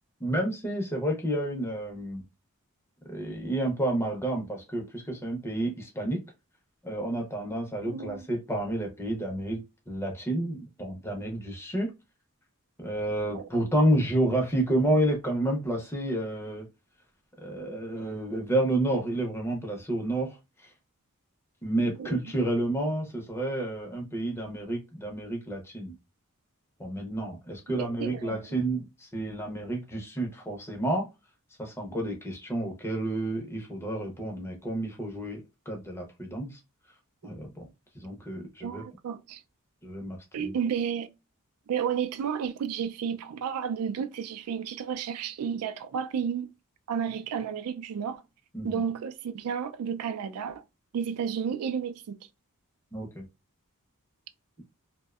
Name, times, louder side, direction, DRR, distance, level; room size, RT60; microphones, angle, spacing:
voice 1, 0.2-2.2 3.0-6.2 6.8-11.9 12.8-16.7 17.4-20.7 21.6-26.0 26.8-31.1 31.6-36.6 37.2-37.7 37.9-38.8 39.8-40.5 48.5-48.8 52.9-53.3, right 1 dB, 10° left, 0.5 m, -30 dB
voice 2, 7.9-8.2 13.3-13.5 14.2-14.4 22.0-22.1 27.7-28.4 38.6-39.4 40.3-41.1 41.7-46.5 46.9-48.2 48.6-50.6 50.9-52.3, right 7 dB, 85° right, 0.3 m, -32 dB
2.6 x 2.1 x 2.3 m
head